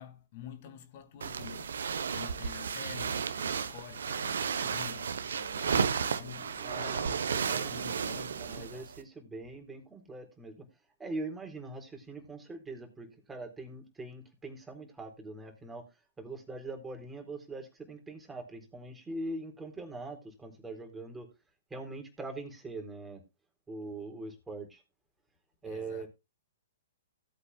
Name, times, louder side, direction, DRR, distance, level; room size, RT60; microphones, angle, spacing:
voice 1, 0.0-7.1 7.3-8.9 25.6-26.1, left 9 dB, 50° left, 2.7 m, -48 dB
sound 1, 1.2-9.0, right 6 dB, 75° right, 1.2 m, -33 dB
voice 2, 6.6-7.9 8.4-10.7 11.0-15.8 16.2-21.3 21.7-23.2 23.7-24.8 25.6-26.1, right 2 dB, 10° right, 3.9 m, -42 dB
17.5 x 8.3 x 2.5 m
hypercardioid pair, 125°, 0 cm